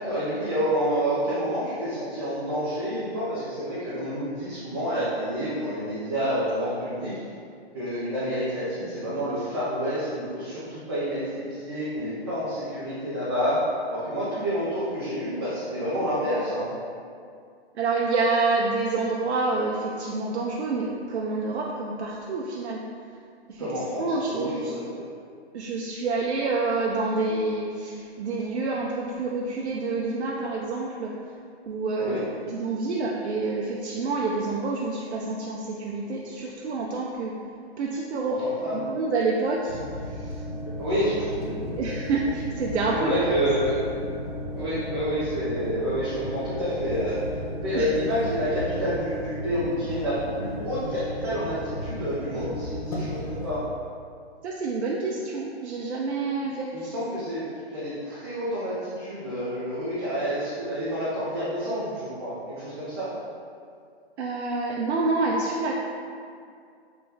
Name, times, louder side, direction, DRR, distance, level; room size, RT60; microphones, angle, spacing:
voice 1, 0.0-7.2 7.7-13.6 13.9-16.7 23.6-24.8 32.0-32.3 38.4-38.9 40.8-41.3 42.9-43.9 44.5-47.2 47.6-53.6 56.7-63.1, equal, 25° right, -11 dB, 0.5 m, -28 dB
voice 2, 17.7-22.8 23.5-23.7 24.0-24.7 25.5-31.1 31.7-32.2 32.5-37.3 37.8-38.4 38.7-40.4 41.4-43.1 47.7-47.9 54.4-57.0 64.2-65.8, right 3 dB, 80° right, -2 dB, 0.5 m, -28 dB
sound 1, 39.7-53.6, left 1 dB, 35° left, 0.5 m, -34 dB
3.6 x 3.3 x 2.7 m, 2.3 s
hypercardioid pair, 170°, 33 cm